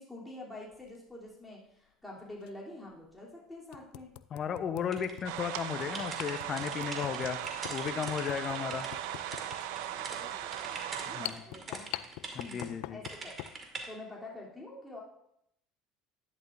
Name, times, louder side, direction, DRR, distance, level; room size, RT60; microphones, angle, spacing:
voice 1, 0.0-4.1 7.5-7.6 9.9-11.9 12.4-13.6 13.9-15.0, left 2 dB, 5° left, -6 dB, 3.3 m, -47 dB
sound 1, 0.7-1.0 2.4-2.5 3.1-3.2 3.7-13.6, left 17 dB, 70° left, 0.3 m, -45 dB
voice 2, 4.3-7.4 7.7-8.9 11.1-11.4 12.3-13.0, left 7 dB, 45° left, 10 dB, 0.9 m, -35 dB
sound 2, 4.9-10.2 10.5-12.6 13.0-13.9, right 3 dB, 35° right, 2.1 m, -44 dB
sound 3, 5.2-11.3, right 12 dB, 75° right, 0.5 m, -38 dB
11.0 x 11.0 x 2.7 m, 0.76 s
hypercardioid pair, 75°, 0 cm